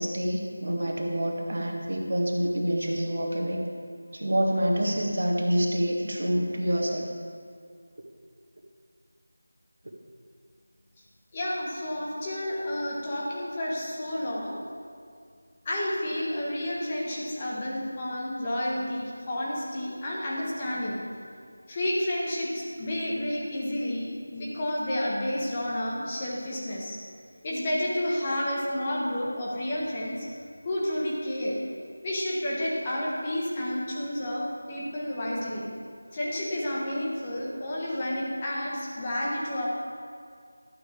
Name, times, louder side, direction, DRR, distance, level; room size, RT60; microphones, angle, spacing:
voice 1, 0.0-3.6 4.1-7.1, equal, 60° right, -1 dB, 1.7 m, -27 dB
voice 2, 11.3-14.6 15.6-21.0 21.7-27.0 27.4-30.3 30.6-31.6 32.0-35.6 36.1-39.7, left 1 dB, 20° left, -5 dB, 1.4 m, -30 dB
12.0 x 6.8 x 4.9 m, 2.2 s
figure-of-eight pair, 170°, 0 cm